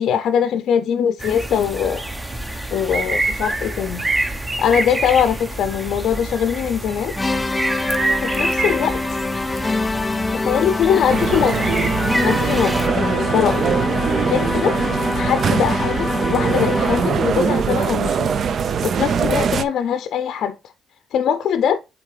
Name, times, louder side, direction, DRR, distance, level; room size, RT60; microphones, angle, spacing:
voice 1, 0.0-2.0 2.5-4.0 4.6-7.1 8.2-9.2 9.5-10.0 10.3-11.8 12.2-13.8 14.3-14.8 15.2-18.3 18.6-20.6 21.1-21.8, left 8 dB, 70° left, 0.5 m, -22 dB
sound 1, 1.2-12.9, right 2 dB, 15° right, 0.9 m, -26 dB
sound 2, 7.2-17.3, left 3 dB, 20° left, 0.4 m, -24 dB
sound 3, 11.1-19.6, right 6 dB, 55° right, 0.4 m, -22 dB
8.2 x 3.8 x 3.2 m
cardioid pair, 90°, 0 cm